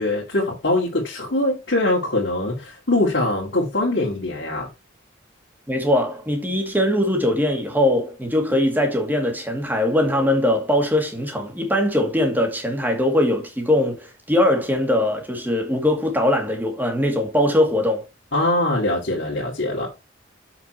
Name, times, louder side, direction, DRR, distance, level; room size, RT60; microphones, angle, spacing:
voice 1, 0.0-4.7 18.3-19.9, left 2 dB, 60° left, 2.3 m, -22 dB
voice 2, 5.7-18.0, left 1 dB, 10° right, 2.1 m, -21 dB
7.2 x 6.0 x 4.3 m
head